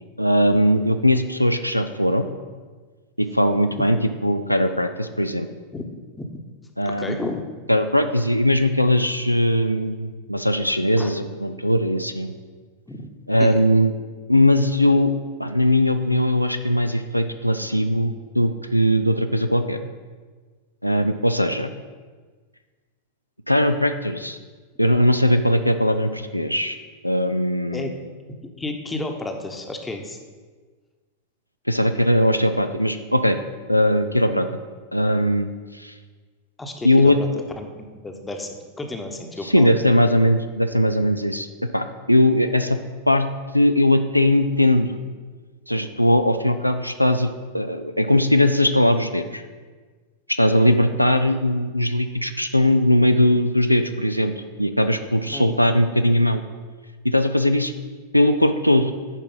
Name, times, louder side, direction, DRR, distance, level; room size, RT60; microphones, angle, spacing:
voice 1, 0.2-2.3 3.2-5.5 6.8-7.3 7.7-12.3 13.3-13.9 14.3-15.1 15.4-19.8 20.8-21.7 23.5-24.4 24.8-26.8 27.0-27.9 31.7-33.4 33.7-34.5 34.9-35.9 36.8-37.2 39.4-41.5 41.7-42.8 43.1-43.3 43.5-45.0 45.7-47.3 47.5-49.4 50.3-54.3 54.6-56.4 57.0-57.7 58.1-58.9, left 1 dB, 90° left, 8 dB, 0.4 m, -19 dB
voice 2, 6.8-7.4 11.0-11.1 12.9-13.1 13.4-13.6 27.7-27.9 28.6-30.2 36.6-37.1 37.6-37.7 38.0-39.7 55.3-55.6, left 2 dB, 10° left, 4 dB, 1.0 m, -32 dB
10.0 x 4.6 x 5.4 m, 1.4 s
figure-of-eight pair, 90°, 0 cm